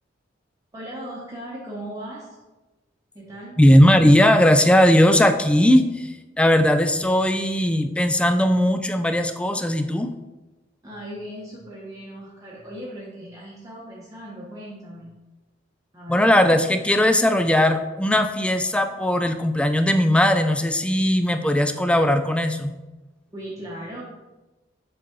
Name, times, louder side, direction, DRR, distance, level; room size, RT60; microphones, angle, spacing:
voice 1, 0.7-2.4 3.1-3.6 10.8-15.1 15.9-16.3 23.3-24.0, right 1 dB, 20° right, -6 dB, 1.0 m, -37 dB
voice 2, 3.6-10.1 16.1-22.7, left 1 dB, 5° left, 8 dB, 0.3 m, -18 dB
6.7 x 4.0 x 3.8 m, 1.1 s
head